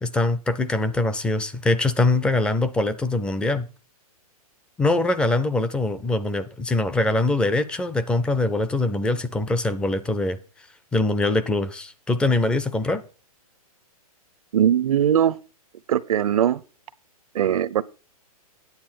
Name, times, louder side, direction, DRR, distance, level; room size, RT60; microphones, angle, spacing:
voice 1, 0.0-3.6 4.8-10.4 10.9-13.0, left 2 dB, 5° left, 0.4 m, -23 dB
voice 2, 14.5-15.4 15.9-16.6 17.3-17.8, right 10 dB, 65° right, 0.6 m, -20 dB
9.6 x 8.4 x 4.4 m
hypercardioid pair, 150°, 19 cm